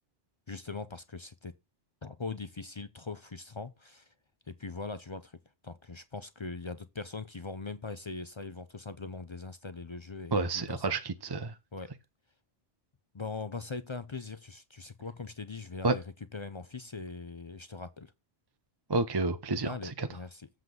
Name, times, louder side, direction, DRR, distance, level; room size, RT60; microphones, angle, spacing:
voice 1, 0.5-1.5 2.0-4.1 4.5-5.4 5.6-10.8 11.7-11.9 13.1-16.0 16.3-18.1 19.6-20.5, left 4 dB, 40° left, 0.4 m, -41 dB
voice 2, 10.3-11.5 15.8-15.9 18.9-20.1, right 3 dB, 25° right, 0.5 m, -30 dB
7.8 x 3.8 x 6.7 m
omnidirectional pair, 1.2 m